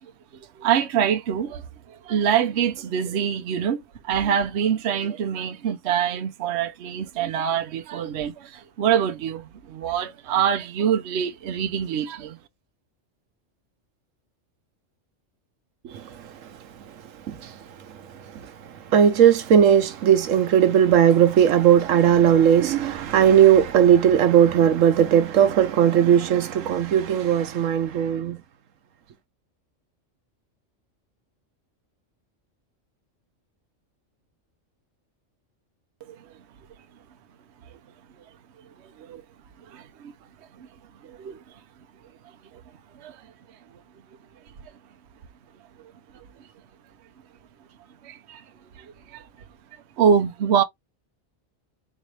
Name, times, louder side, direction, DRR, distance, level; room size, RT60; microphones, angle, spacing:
voice 1, 0.6-12.4 39.0-39.2 39.7-40.1 40.6-40.7 41.0-41.4 42.9-43.2 46.1-46.2 48.0-48.4 48.8-49.3 50.0-50.6, right 8 dB, 65° right, 0.9 m, -25 dB
voice 2, 18.9-28.4, right 9 dB, 85° right, 1.1 m, -17 dB
4.0 x 3.2 x 3.1 m
omnidirectional pair, 1.3 m